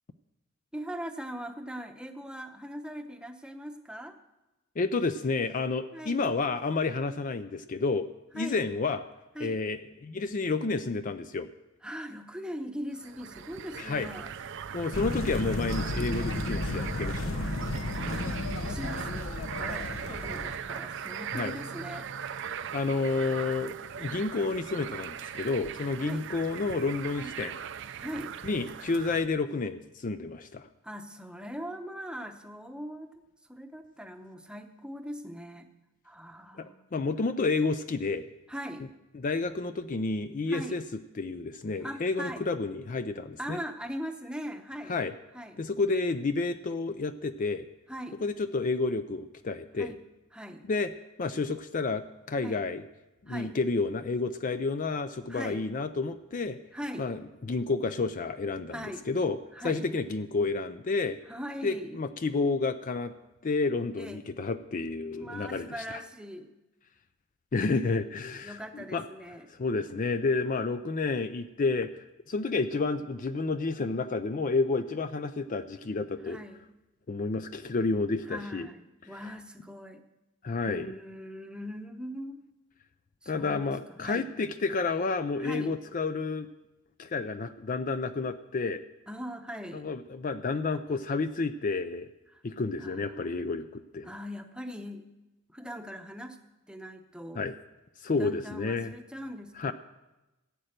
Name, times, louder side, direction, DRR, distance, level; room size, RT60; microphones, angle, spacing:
voice 1, 0.7-4.2 5.9-6.2 8.3-8.6 9.3-9.6 11.8-14.3 17.9-22.1 22.9-23.4 26.0-26.3 27.2-27.3 28.0-28.3 30.8-33.2 33.5-35.7 36.0-36.9 38.5-38.9 40.5-40.8 41.8-42.5 43.4-45.0 45.3-45.6 47.9-48.2 49.8-50.0 50.3-50.7 52.4-52.7 53.3-53.6 55.3-55.6 56.7-57.1 58.7-59.1 59.5-59.9 61.3-62.0 63.9-64.2 65.2-66.5 68.4-69.5 76.2-76.7 78.3-80.0 80.7-82.4 83.2-84.3 85.4-85.8 89.1-89.9 92.3-92.4 92.8-93.3 94.0-95.0 95.5-96.4 96.7-97.5 98.2-99.7, equal, 5° right, 6 dB, 0.8 m, -41 dB
voice 2, 4.8-8.1 8.3-9.0 9.4-11.5 13.8-14.1 14.7-17.5 21.3-21.5 22.7-27.5 28.4-30.7 36.6-38.3 39.2-40.8 41.2-43.6 44.9-45.1 45.6-47.7 48.2-49.9 50.7-50.9 51.2-52.8 53.2-56.6 57.0-59.4 59.6-61.2 61.6-63.1 63.4-66.0 67.5-69.1 69.6-76.4 77.1-78.7 80.4-80.9 83.3-86.5 87.0-88.8 89.7-92.1 92.4-94.1 97.4-97.5 98.0-98.9 99.6-99.7, left 3 dB, 40° left, 10 dB, 0.4 m, -30 dB
sound 1, 13.0-29.3, right 8 dB, 60° right, 0.5 m, -39 dB
sound 2, 14.9-20.6, left 2 dB, 70° left, 0.8 m, -33 dB
14.5 x 8.8 x 6.6 m, 1.0 s
head